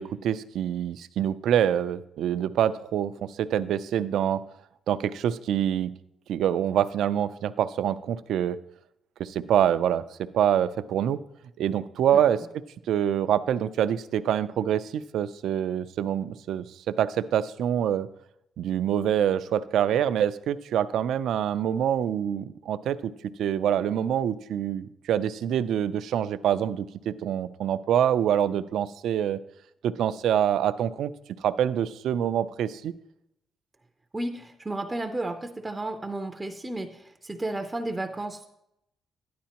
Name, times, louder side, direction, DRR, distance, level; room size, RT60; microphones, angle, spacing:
voice 1, 0.0-4.4 4.9-5.9 6.3-8.6 9.2-10.0 10.3-11.2 11.6-12.4 12.9-18.1 18.6-23.1 23.4-29.4 29.8-31.1 31.4-32.9, right 10 dB, 75° right, 13 dB, 0.4 m, -25 dB
voice 2, 34.1-38.5, right 2 dB, 15° right, 5 dB, 0.5 m, -33 dB
12.5 x 10.5 x 2.9 m, 0.81 s
cardioid pair, 160°, 0 cm